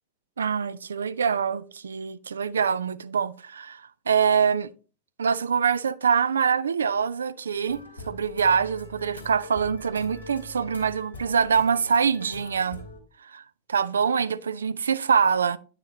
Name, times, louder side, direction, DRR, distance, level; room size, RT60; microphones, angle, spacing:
voice 1, 0.4-4.7 5.2-12.8 13.2-13.4 13.7-15.6, right 6 dB, 70° right, 0.4 m, -24 dB
sound 1, 7.7-13.0, left 1 dB, 85° left, 1.9 m, -43 dB
10.0 x 6.7 x 2.7 m
figure-of-eight pair, 90°, 0 cm